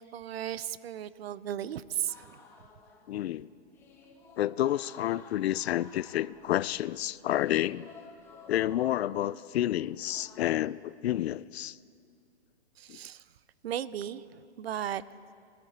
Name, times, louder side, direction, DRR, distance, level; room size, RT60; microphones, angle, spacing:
voice 1, 0.1-2.4 12.8-13.2 13.6-15.0, right 10 dB, 65° right, 18 dB, 0.6 m, -36 dB
sound 1, 2.1-10.4, left 4 dB, 5° left, 0.6 m, -54 dB
voice 2, 3.1-3.5 4.4-7.9 8.5-11.8 12.9-13.0, left 13 dB, 65° left, 20 dB, 0.5 m, -30 dB
21.0 x 13.0 x 4.3 m, 2.3 s
hypercardioid pair, 155°, 33 cm